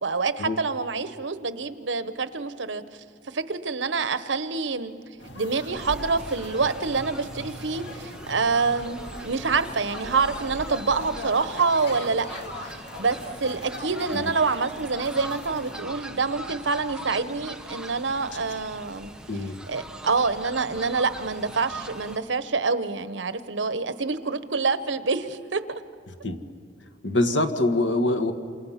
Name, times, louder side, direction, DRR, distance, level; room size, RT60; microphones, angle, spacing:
voice 1, 0.0-2.8 3.3-4.9 5.4-12.3 12.6-19.1 19.7-25.8, right 4 dB, 80° right, 12 dB, 1.0 m, -26 dB
sound 1, 5.2-15.8, left 1 dB, 65° left, 2.3 m, -40 dB
Fowl, 5.7-22.2, right 1 dB, 5° right, 1.1 m, -41 dB
voice 2, 26.1-26.4 27.0-28.3, left 2 dB, 85° left, 7 dB, 1.7 m, -24 dB
28.0 x 27.5 x 5.8 m, 2.1 s
head